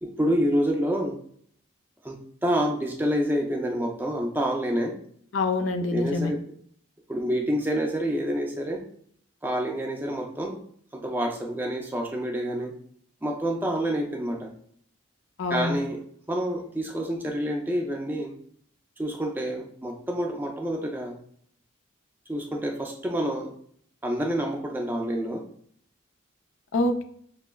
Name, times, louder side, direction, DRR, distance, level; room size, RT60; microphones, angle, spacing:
voice 1, 0.0-1.2 2.0-5.0 5.9-6.4 7.1-8.9 9.4-10.6 10.9-12.7 13.2-14.5 15.5-18.4 19.0-21.2 22.3-23.5 24.0-25.5, equal, 10° right, 2 dB, 0.3 m, -28 dB
voice 2, 5.3-6.3 15.4-15.8 26.7-27.0, left 2 dB, 75° left, 6 dB, 0.4 m, -25 dB
6.1 x 2.0 x 2.2 m, 0.62 s
head